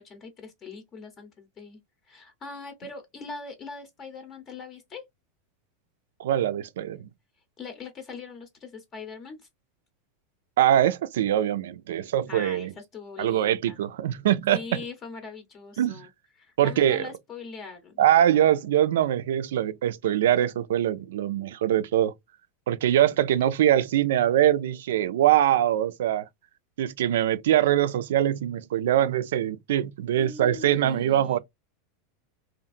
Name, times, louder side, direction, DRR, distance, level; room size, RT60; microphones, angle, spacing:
voice 1, 0.0-1.8 2.0-5.0 7.6-9.5 11.9-13.8 14.5-16.1 16.4-18.0 23.4-23.7 30.2-31.4, left 4 dB, 30° left, 0.6 m, -41 dB
voice 2, 6.2-7.0 10.6-12.7 13.2-14.6 15.8-16.1 16.6-17.1 18.0-22.1 22.7-26.3 26.8-31.4, right 11 dB, 85° right, 0.3 m, -23 dB
2.8 x 2.4 x 2.4 m
supercardioid pair, 140°, 0 cm